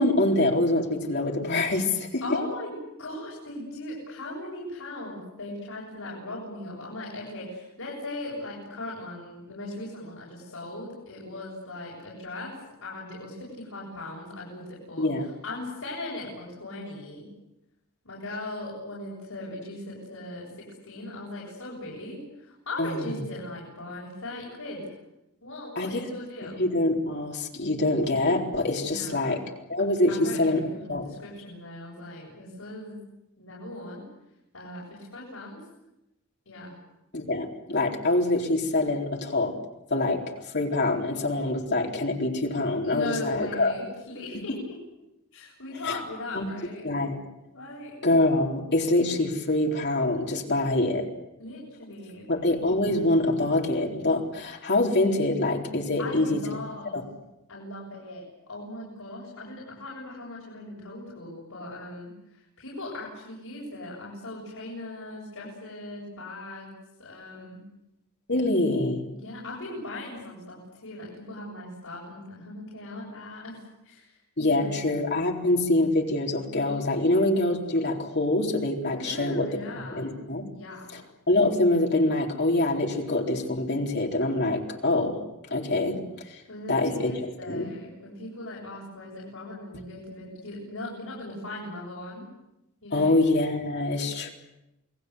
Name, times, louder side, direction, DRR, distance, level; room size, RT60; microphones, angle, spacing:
voice 1, 0.0-2.2 15.0-15.3 22.8-23.2 25.8-26.1 26.6-29.4 29.7-30.6 30.9-31.1 37.1-39.5 39.9-40.2 40.5-43.7 45.9-46.0 46.3-46.4 46.8-47.2 48.0-51.1 52.3-56.4 56.9-57.0 68.3-69.0 74.4-79.5 79.9-80.5 80.9-81.0 81.3-85.2 85.5-86.0 86.3-86.4 86.7-87.1 87.4-87.7 92.9-94.3, left 2 dB, 50° left, 0 dB, 4.1 m, -25 dB
voice 2, 2.2-15.1 15.4-17.3 18.0-24.9 25.4-26.6 28.8-29.4 30.1-33.0 33.4-34.1 34.5-35.6 36.5-36.7 42.8-44.8 45.3-46.8 47.5-48.0 51.4-52.3 56.0-57.0 57.5-66.7 67.0-67.7 69.1-74.9 79.0-80.0 80.5-80.9 86.3-92.3 92.8-93.2, left 2 dB, 75° left, -5 dB, 8.0 m, -39 dB
29.0 x 20.0 x 8.2 m, 0.91 s
head